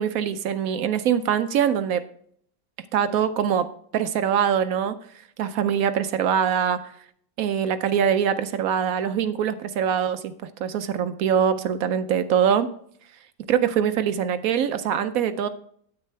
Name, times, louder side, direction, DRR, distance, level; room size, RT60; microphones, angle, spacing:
voice 1, 0.0-2.0 2.9-3.7 3.9-4.9 5.4-6.8 7.4-10.3 10.6-12.7 13.5-15.5, right 8 dB, 75° right, 10 dB, 0.8 m, -23 dB
9.6 x 8.3 x 3.3 m, 0.63 s
omnidirectional pair, 2.0 m